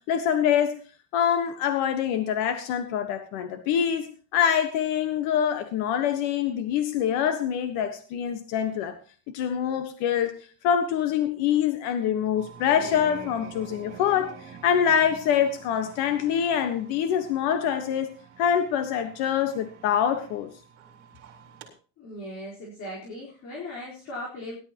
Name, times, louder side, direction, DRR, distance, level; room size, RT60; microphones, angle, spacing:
voice 1, 0.1-0.8 1.1-8.9 9.3-10.3 10.6-14.3 14.6-18.1 18.4-20.5, left 8 dB, 70° left, 8 dB, 1.5 m, -25 dB
sound 1, 12.4-21.7, right 6 dB, 45° right, 4.1 m, -47 dB
voice 2, 22.0-24.6, left 1 dB, 45° left, -4 dB, 4.3 m, -38 dB
18.5 x 12.0 x 3.0 m, 0.38 s
cardioid pair, 175°, 40 cm